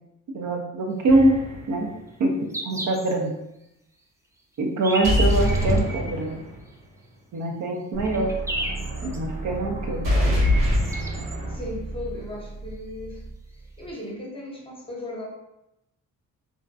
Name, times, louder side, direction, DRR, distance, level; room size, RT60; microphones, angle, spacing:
voice 1, 0.3-1.3 1.7-1.9 2.2-2.3 2.6-3.3 4.6-6.4 7.3-8.3 9.0-10.0, right 2 dB, 60° right, 1 dB, 0.6 m, -23 dB
sound 1, 1.1-1.2 2.1-2.2 2.5-3.1 3.6-3.7 4.5-5.8 6.7-6.8 7.4-7.5 7.8-9.2 10.3-10.4 10.6-11.3 12.8-12.9 13.1-13.2 13.9-14.0, right 1 dB, 10° right, 0.4 m, -33 dB
sound 2, 1.1-1.7 5.0-6.6 10.0-11.7, left 1 dB, 75° right, 1.1 m, -23 dB
sound 3, 7.9-13.9, right 2 dB, 30° right, 0.9 m, -34 dB
voice 2, 11.5-13.2 13.8-15.3, left 1 dB, 15° left, -3 dB, 0.7 m, -36 dB
2.4 x 2.1 x 2.6 m, 0.86 s
cardioid pair, 85°, 32 cm